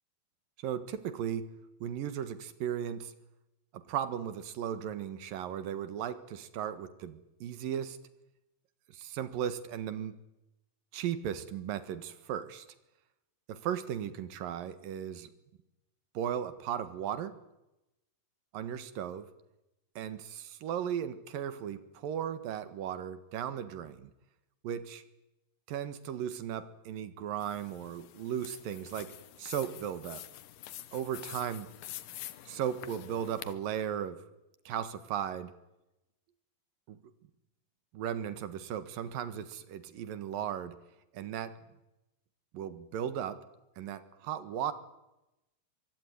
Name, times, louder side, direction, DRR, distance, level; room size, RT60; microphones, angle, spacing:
voice 1, 0.6-1.5 1.8-3.1 3.7-8.0 8.9-10.1 10.9-12.7 13.5-15.3 16.1-17.4 18.5-19.3 20.0-24.1 24.6-25.0 25.7-29.1 29.4-30.2 30.9-31.7 32.5-34.2 34.7-35.5 36.9-37.0 37.9-40.8 41.1-41.6 42.5-43.4 43.8-44.7, right 9 dB, 75° right, 13 dB, 3.2 m, -36 dB
sound 1, 27.4-33.5, left 13 dB, 75° left, 2.8 m, -47 dB
24.0 x 24.0 x 9.5 m, 0.94 s
omnidirectional pair, 4.0 m